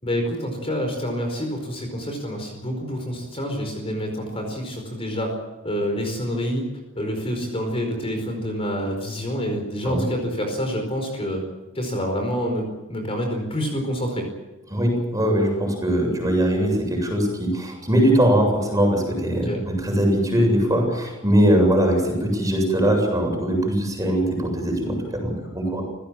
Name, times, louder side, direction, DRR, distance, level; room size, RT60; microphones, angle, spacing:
voice 1, 0.0-5.3 5.6-6.7 6.9-11.4 11.7-14.3 19.5-19.6, equal, 25° left, 3 dB, 4.8 m, -27 dB
voice 2, 14.7-25.8, equal, 15° right, 2 dB, 7.7 m, -21 dB
29.5 x 16.5 x 7.7 m, 1.2 s
head